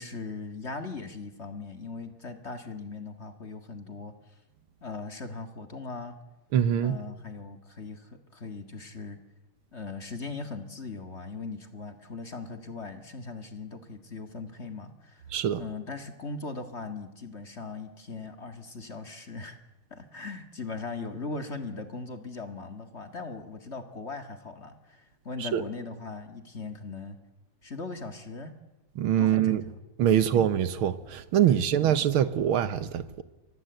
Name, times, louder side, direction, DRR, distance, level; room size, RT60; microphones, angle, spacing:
voice 1, 0.0-4.1 4.8-6.1 6.8-9.2 9.7-15.2 15.6-19.6 19.9-27.2 27.6-28.5 29.2-29.8 30.0-30.3 31.5-31.7, left 4 dB, 30° left, 2.0 m, -39 dB
voice 2, 6.5-7.0 15.3-15.6 25.4-25.6 29.0-29.6 30.0-33.2, right 10 dB, 75° right, 2.0 m, -24 dB
29.0 x 24.5 x 8.1 m
omnidirectional pair, 2.4 m